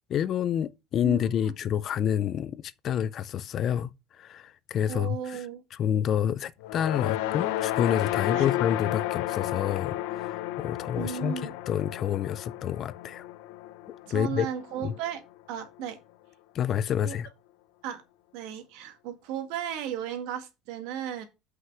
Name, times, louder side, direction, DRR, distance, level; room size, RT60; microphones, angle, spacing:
voice 1, 0.1-3.9 4.2-5.4 5.7-13.2 14.1-14.5 14.8-14.9 16.5-17.3, left 9 dB, 30° left, 0.3 m, -28 dB
voice 2, 1.0-1.5 4.9-5.6 8.3-8.5 11.0-11.5 14.1-15.2 15.5-16.0 17.0-17.2 17.8-18.0 18.3-21.2, right 9 dB, 65° right, 1.8 m, -35 dB
sound 1, 6.6-15.0, left 15 dB, 80° left, 0.6 m, -32 dB
5.8 x 5.7 x 6.1 m
cardioid pair, 175°, 0 cm